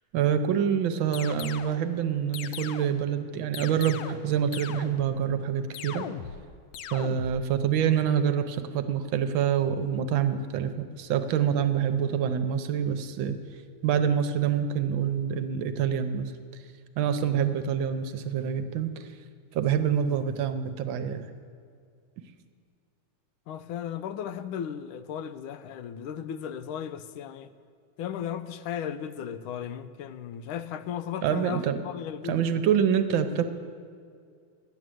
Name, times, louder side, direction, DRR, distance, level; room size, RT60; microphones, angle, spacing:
voice 1, 0.1-6.1 6.9-13.4 13.8-16.3 17.0-19.1 19.5-21.3 31.2-31.8 32.2-33.5, right 8 dB, 75° right, 1.5 m, -26 dB
sound 1, 1.1-1.8 2.3-3.1 3.5-4.3 4.5-5.2 5.7-6.4 6.7-7.4, left 8 dB, 75° left, 1.1 m, -39 dB
voice 2, 23.5-27.5 28.0-32.5, left 9 dB, 90° left, 1.4 m, -35 dB
11.0 x 8.5 x 7.7 m
omnidirectional pair, 2.2 m